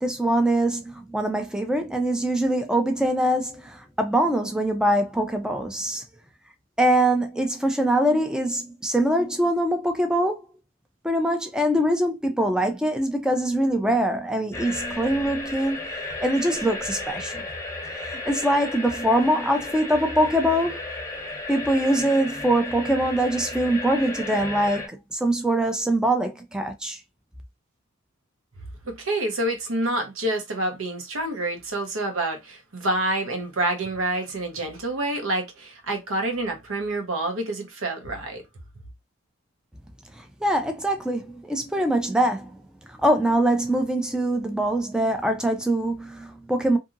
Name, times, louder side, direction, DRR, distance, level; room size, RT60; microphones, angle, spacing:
voice 1, 0.0-6.0 6.8-10.4 11.0-15.8 16.2-17.4 18.1-20.8 21.5-27.0 40.2-42.6 42.9-46.8, right 1 dB, 5° right, 0.4 m, -23 dB
sound 1, 14.5-24.9, left 2 dB, 15° left, 0.8 m, -34 dB
voice 2, 28.8-38.4, right 1 dB, 85° right, 0.9 m, -27 dB
2.7 x 2.6 x 2.5 m
head